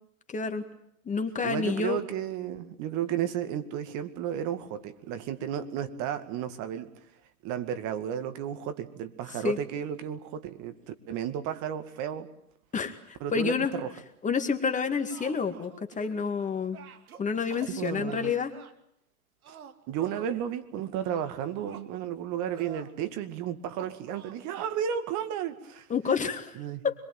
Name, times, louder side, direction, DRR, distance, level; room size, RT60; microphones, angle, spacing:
voice 1, 0.3-0.6 1.1-2.0 9.4-9.6 12.7-13.7 14.2-16.8 17.2-18.5 25.9-26.6 26.8-26.9, left 5 dB, 15° left, 7 dB, 2.2 m, -29 dB
voice 2, 1.4-6.9 7.4-10.8 11.1-12.3 13.2-13.9 17.7-18.3 19.5-19.6 19.9-25.9 26.6-26.8, right 9 dB, 40° right, 10 dB, 2.3 m, -33 dB
sound 1, 14.7-16.4 16.7-18.7 19.4-20.4 21.0-21.9 22.5-22.9 23.8-24.4, right 8 dB, 75° right, 2.6 m, -48 dB
26.0 x 22.5 x 9.2 m, 0.74 s
hypercardioid pair, 115°, 43 cm